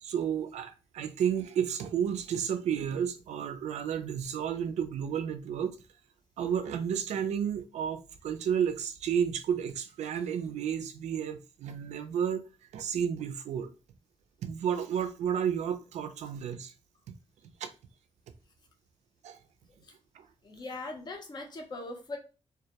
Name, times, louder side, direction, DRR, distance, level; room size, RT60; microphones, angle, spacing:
voice 1, 0.0-5.8 6.4-12.4 12.7-13.7 14.4-16.7 17.6-17.7 19.2-19.4 20.1-20.3, right 8 dB, 85° right, 0.4 m, -32 dB
voice 2, 20.4-22.2, left 2 dB, 40° left, 0.6 m, -40 dB
2.2 x 2.1 x 2.8 m
cardioid pair, 100°, 12 cm